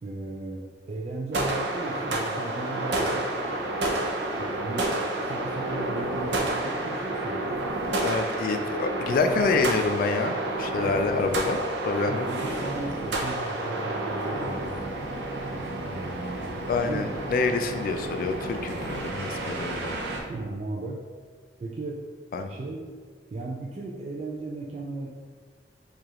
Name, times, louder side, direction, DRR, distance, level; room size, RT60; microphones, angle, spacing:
voice 1, 0.0-3.3 4.1-5.0 5.3-7.5 12.1-17.1 20.3-21.0 21.6-22.0 22.4-22.8 23.3-25.1, right 2 dB, 35° right, -2 dB, 0.3 m, -36 dB
sound 1, 1.3-20.2, right 1 dB, 80° right, 0.6 m, -30 dB
voice 2, 8.0-12.3 16.7-19.9 22.3-22.5, left 4 dB, 55° left, 7 dB, 0.3 m, -27 dB
4.7 x 2.4 x 2.9 m, 1.5 s
head